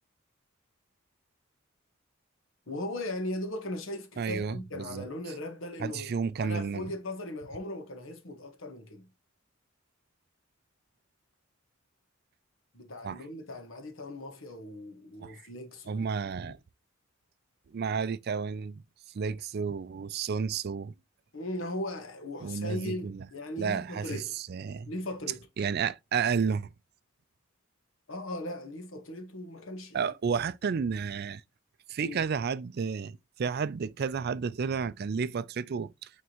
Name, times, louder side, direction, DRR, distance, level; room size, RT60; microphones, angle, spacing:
voice 1, 2.7-9.1 12.7-16.1 16.4-16.5 21.3-24.4 24.9-25.5 28.1-30.1 32.0-32.2, left 1 dB, 65° left, 1.4 m, -38 dB
voice 2, 4.2-5.1 5.8-6.9 13.0-13.2 15.2-15.4 15.9-16.6 17.7-18.8 19.1-20.9 22.4-23.2 23.6-24.9 25.6-26.7 29.9-31.4 31.9-36.1, right 6 dB, 50° right, 0.4 m, -31 dB
9.2 x 3.6 x 3.0 m
head